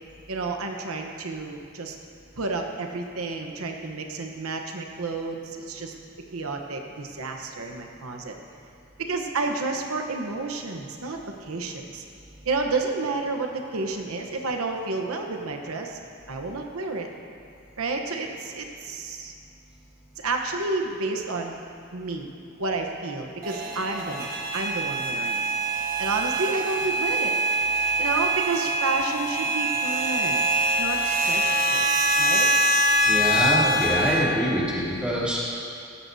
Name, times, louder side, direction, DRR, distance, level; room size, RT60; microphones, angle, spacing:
voice 1, 0.3-2.0 2.4-5.9 6.3-8.3 9.0-12.0 12.4-16.0 16.3-17.1 17.8-19.3 20.2-21.5 21.9-22.3 22.6-25.5 26.0-27.3 28.0-30.5 30.8-32.5, right 3 dB, 80° right, 3 dB, 1.0 m, -30 dB
sound 1, 23.4-34.2, right 1 dB, 40° right, 1.3 m, -24 dB
voice 2, 33.1-35.4, equal, 5° right, -8 dB, 2.8 m, -24 dB
17.5 x 14.0 x 2.7 m, 2.4 s
head